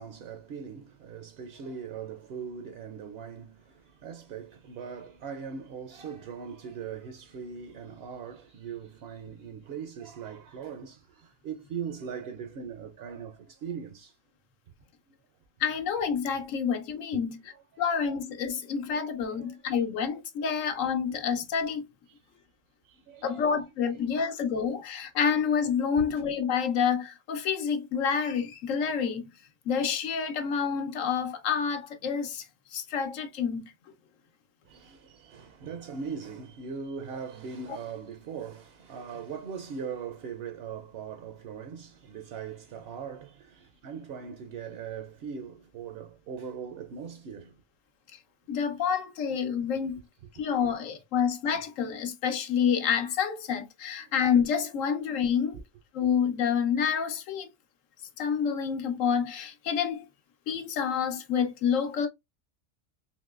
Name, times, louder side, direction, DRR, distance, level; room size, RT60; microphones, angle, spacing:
voice 1, 0.0-14.2 17.1-17.2 17.5-17.6 19.3-19.6 22.1-22.5 22.8-23.4 24.1-24.2 25.9-26.2 34.7-47.5 50.4-50.5 55.5-55.6, right 6 dB, 60° right, 0.7 m, -40 dB
voice 2, 15.6-17.4 17.8-21.8 23.2-29.3 29.7-32.5 32.7-33.7 48.5-50.0 50.4-55.6 55.9-57.5 58.2-60.0 60.5-62.1, left 7 dB, 85° left, 1.1 m, -28 dB
3.8 x 2.8 x 2.3 m
omnidirectional pair, 1.3 m